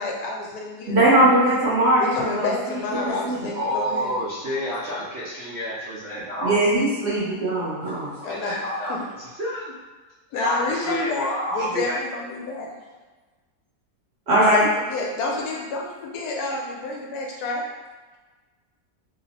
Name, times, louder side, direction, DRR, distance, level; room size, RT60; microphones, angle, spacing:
voice 1, 0.0-1.0 2.0-4.3 8.2-8.6 8.9-9.0 10.3-12.7 14.5-14.6 14.9-17.7, left 3 dB, 70° left, -1 dB, 1.1 m, -29 dB
voice 2, 0.9-3.5 6.4-8.1 14.3-14.6, right 1 dB, 50° right, -8 dB, 0.9 m, -20 dB
voice 3, 3.5-6.6 8.2-9.7 10.4-12.0, equal, 75° right, -8 dB, 0.6 m, -29 dB
2.9 x 2.0 x 4.0 m, 1.3 s
omnidirectional pair, 1.8 m